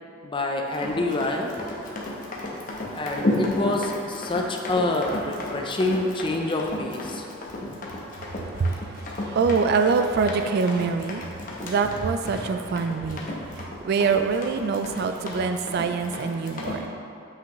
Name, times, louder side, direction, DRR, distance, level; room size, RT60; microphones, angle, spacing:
voice 1, 0.2-1.7 2.9-7.2, left 2 dB, 25° left, 2 dB, 0.5 m, -27 dB
Run, 0.7-16.8, left 1 dB, 40° left, 0.9 m, -33 dB
voice 2, 8.2-11.3 11.6-13.3 13.5-16.9, right 5 dB, 50° right, 8 dB, 0.3 m, -25 dB
7.6 x 5.6 x 3.1 m, 2.6 s
head